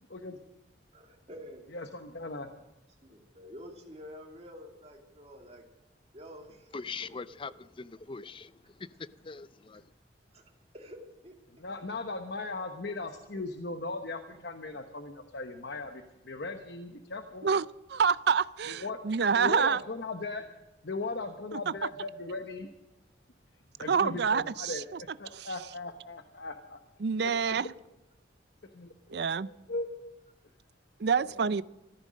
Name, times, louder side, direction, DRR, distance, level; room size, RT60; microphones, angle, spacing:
voice 1, 0.9-1.6 3.0-5.6 6.1-6.7 10.3-10.4 10.7-11.3 23.6-23.9, equal, 35° right, 2.7 m, -48 dB
voice 2, 1.7-2.5 11.6-17.5 18.7-19.0 19.3-20.4 20.8-22.7 23.8-24.8 25.2-26.8 27.2-27.7 28.7-30.1 31.1-31.6, left 3 dB, 60° left, 1.0 m, -38 dB
voice 3, 6.7-9.9, left 4 dB, 30° left, 0.5 m, -42 dB
voice 4, 17.4-19.8 21.5-21.7 23.9-25.0 25.3-25.5 27.0-27.7 29.1-29.5 31.0-31.6, right 6 dB, 60° right, 0.5 m, -27 dB
14.0 x 14.0 x 6.3 m
head